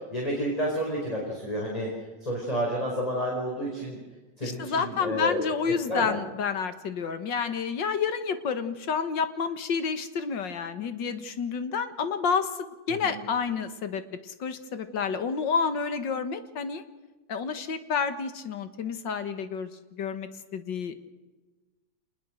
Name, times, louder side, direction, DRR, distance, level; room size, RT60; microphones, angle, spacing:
voice 1, 0.1-1.9 2.2-4.0 4.4-5.5 5.9-6.1 13.0-13.2, equal, 20° left, -2 dB, 4.9 m, -30 dB
voice 2, 4.4-12.5 12.9-16.8 17.3-19.7 20.0-21.0, left 6 dB, 80° left, 10 dB, 2.2 m, -29 dB
27.0 x 20.5 x 6.4 m, 1.2 s
omnidirectional pair, 2.0 m